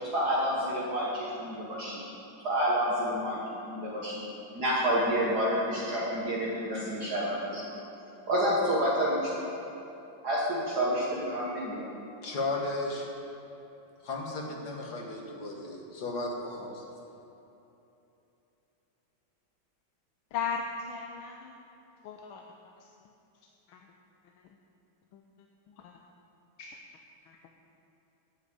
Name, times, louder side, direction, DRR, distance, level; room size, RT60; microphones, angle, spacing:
voice 1, 0.1-2.0 2.4-4.1 4.6-7.8 8.3-9.3 10.2-11.9, equal, 55° right, -6 dB, 1.9 m, -29 dB
voice 2, 12.2-13.1 14.0-16.9, left 2 dB, 55° left, 0 dB, 1.9 m, -35 dB
voice 3, 20.3-21.6 22.0-22.4 22.8-23.1 23.7-23.9 24.4-24.5 25.1-25.2 25.7-25.9 26.6-26.8 27.3-27.4, left 6 dB, 85° left, 2 dB, 1.6 m, -37 dB
9.5 x 8.0 x 8.4 m, 3.0 s
omnidirectional pair, 2.2 m